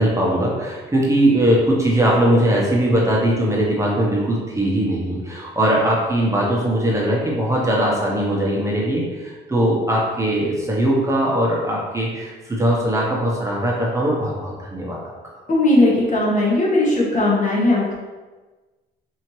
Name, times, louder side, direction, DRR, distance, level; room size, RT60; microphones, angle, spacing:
voice 1, 0.0-15.1, right 1 dB, 15° right, -4 dB, 0.9 m, -20 dB
voice 2, 15.5-17.9, left 2 dB, 40° left, -3 dB, 1.1 m, -18 dB
4.2 x 2.8 x 3.1 m, 1.3 s
cardioid pair, 90°, 20 cm